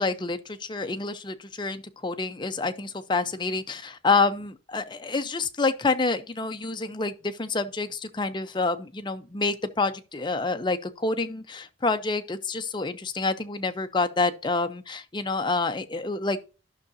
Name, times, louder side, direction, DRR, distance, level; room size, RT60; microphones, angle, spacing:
voice 1, 0.0-16.4, left 3 dB, 25° left, 0.6 m, -28 dB
14.5 x 5.7 x 2.7 m
head